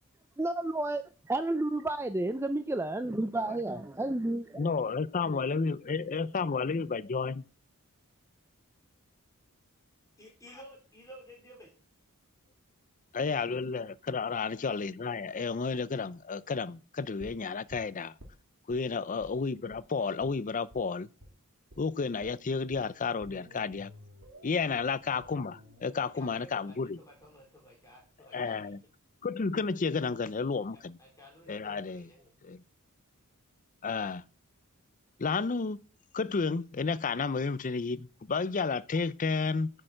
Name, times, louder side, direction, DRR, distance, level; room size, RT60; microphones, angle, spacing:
voice 1, 0.4-4.7, right 2 dB, 10° right, 0.5 m, -31 dB
voice 2, 4.6-7.4 13.1-18.1 18.7-21.1 21.8-23.9 24.4-27.0 28.3-28.8 29.2-31.0 31.5-32.1 32.4-32.6 33.8-34.2 35.2-35.8 36.1-39.7, left 4 dB, 35° left, 0.5 m, -31 dB
voice 3, 10.2-11.7 18.8-19.1 24.6-24.8 26.0-28.8 30.7-32.3, equal, 15° left, 3.8 m, -53 dB
sound 1, 17.2-18.8 19.2-19.4 19.7-19.8 20.2-20.3 20.7-20.8 21.2-21.4 21.7-21.8 22.2-28.2 28.5-28.6, equal, 65° right, 3.0 m, -54 dB
10.0 x 6.5 x 7.6 m
head